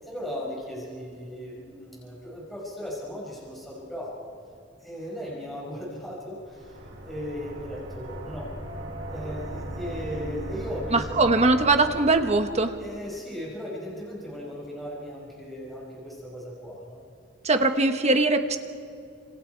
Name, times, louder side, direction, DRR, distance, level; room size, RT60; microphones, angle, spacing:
voice 1, 0.0-4.3 4.8-8.5 9.1-11.5 12.8-17.0, equal, ahead, -6 dB, 5.6 m, -37 dB
sound 1, 6.4-12.9, right 1 dB, 85° right, 6.0 m, -38 dB
voice 2, 10.9-12.7 17.4-18.6, right 3 dB, 35° right, 7 dB, 1.4 m, -21 dB
29.5 x 27.0 x 4.7 m, 2.4 s
head